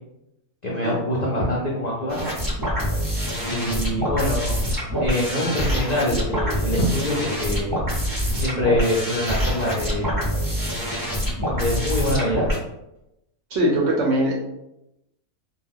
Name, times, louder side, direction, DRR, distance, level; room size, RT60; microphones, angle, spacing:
voice 1, 0.6-2.2 3.5-4.6 5.0-7.7 8.3-10.1 11.3-12.5, left 1 dB, 65° left, -6 dB, 0.4 m, -24 dB
sound 1, 2.1-12.6, equal, 25° right, 0.4 m, -25 dB
voice 2, 13.5-14.3, right 1 dB, 65° right, -2 dB, 0.7 m, -21 dB
2.3 x 2.2 x 3.4 m, 0.88 s
omnidirectional pair, 1.5 m